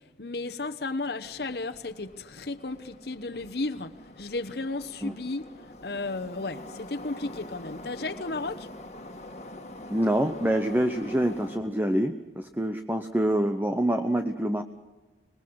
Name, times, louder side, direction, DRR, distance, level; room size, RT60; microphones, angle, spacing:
voice 1, 0.2-5.4 5.8-8.7, left 3 dB, 65° left, 1.1 m, -34 dB
Subway metro underground, 1.2-11.6, left 1 dB, 40° left, 2.1 m, -45 dB
voice 2, 9.9-14.6, right 1 dB, 10° right, 0.8 m, -26 dB
26.0 x 20.5 x 6.4 m
head